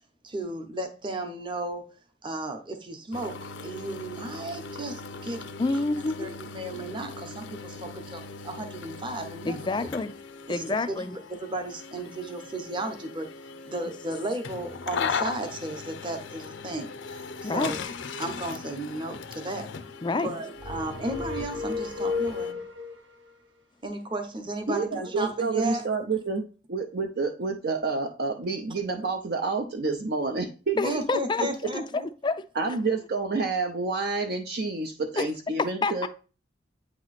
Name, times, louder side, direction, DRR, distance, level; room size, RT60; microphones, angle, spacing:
voice 1, 0.2-1.9 2.2-5.4 6.0-9.9 10.5-11.0 11.3-13.3 13.6-17.8 18.2-19.7 20.2-22.6 23.8-26.0 30.7-32.1, right 1 dB, 25° right, 0.8 m, -34 dB
sound 1, 3.1-22.5, left 5 dB, 75° left, 0.5 m, -39 dB
voice 2, 5.6-6.4 6.7-6.9 9.5-10.1 10.5-11.2 17.4-17.7 20.0-20.3 30.8-31.5 31.9-32.8 35.2-35.3 35.6-36.1, left 3 dB, 25° left, 0.3 m, -28 dB
sound 2, 20.6-23.0, left 4 dB, 90° right, 1.2 m, -32 dB
voice 3, 24.7-31.0 32.6-36.1, right 4 dB, 55° right, 0.5 m, -29 dB
8.4 x 2.9 x 4.0 m
head